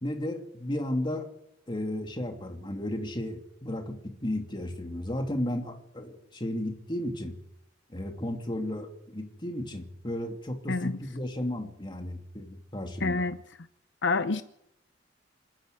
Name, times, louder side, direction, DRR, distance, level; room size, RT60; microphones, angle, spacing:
voice 1, 0.0-1.3 1.7-7.3 7.9-13.3, left 1 dB, 25° left, 4 dB, 2.6 m, -34 dB
voice 2, 10.7-11.0 13.0-13.4 14.0-14.4, left 3 dB, 70° left, 11 dB, 0.8 m, -27 dB
27.0 x 10.5 x 9.6 m, 0.79 s
head